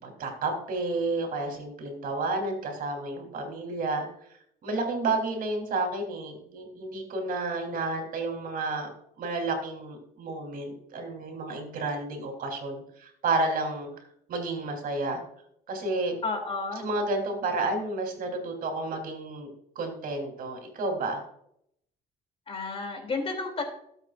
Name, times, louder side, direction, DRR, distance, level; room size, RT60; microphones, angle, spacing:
voice 1, 0.0-4.1 4.6-8.9 9.2-13.9 14.3-15.2 15.7-16.1 16.8-19.5 19.8-21.2, right 2 dB, 60° right, 3 dB, 3.9 m, -31 dB
voice 2, 16.2-16.8 22.5-23.6, left 3 dB, 35° left, 3 dB, 3.2 m, -31 dB
18.5 x 8.2 x 2.6 m, 0.71 s
cardioid pair, 110°, 17 cm